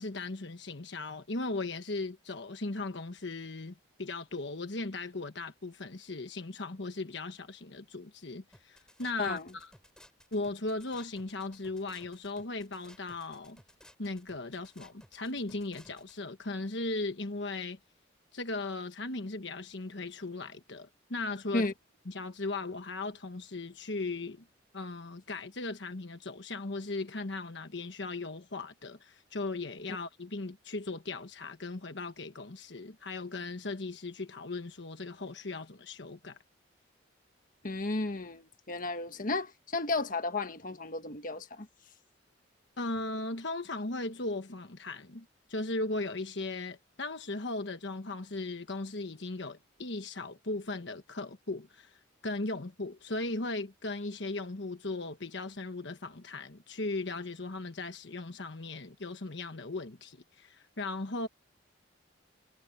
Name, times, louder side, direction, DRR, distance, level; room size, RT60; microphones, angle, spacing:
voice 1, 0.0-9.7 10.3-13.6 14.0-17.8 18.3-21.7 22.1-24.4 24.7-36.4 42.8-52.0 52.2-61.3, left 2 dB, 65° left, 1.3 m, -37 dB
sound 1, 8.5-16.2, left 1 dB, 5° left, 6.9 m, -58 dB
voice 2, 9.2-9.5 21.5-21.7 37.6-41.7, left 2 dB, 45° left, 1.5 m, -33 dB
head